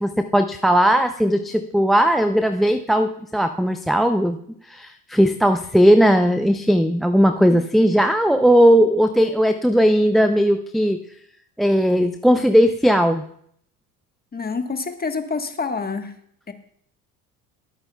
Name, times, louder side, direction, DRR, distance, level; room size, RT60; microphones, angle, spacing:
voice 1, 0.0-4.4 4.7-11.0 11.6-13.2, equal, ahead, 8 dB, 0.4 m, -17 dB
voice 2, 14.3-16.1 16.5-16.6, left 4 dB, 20° left, 7 dB, 1.3 m, -27 dB
22.0 x 8.7 x 2.3 m, 0.68 s
hypercardioid pair, 70°, 45 cm